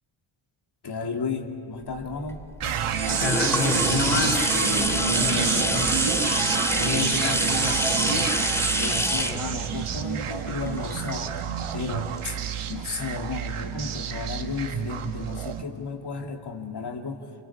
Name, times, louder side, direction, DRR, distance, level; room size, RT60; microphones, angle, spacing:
voice 1, 0.8-2.4 8.7-11.4 11.7-12.4 12.7-17.2, left 4 dB, 50° left, 2 dB, 2.8 m, -33 dB
sound 1, 1.9-11.7 12.2-12.3, equal, 5° left, 2.1 m, -27 dB
sound 2, 2.6-15.6, right 9 dB, 85° right, 1.3 m, -29 dB
voice 2, 3.0-6.4 6.7-8.4, left 2 dB, 70° left, 2 dB, 5.0 m, -28 dB
27.5 x 24.0 x 8.7 m, 2.6 s
cardioid pair, 90°, 49 cm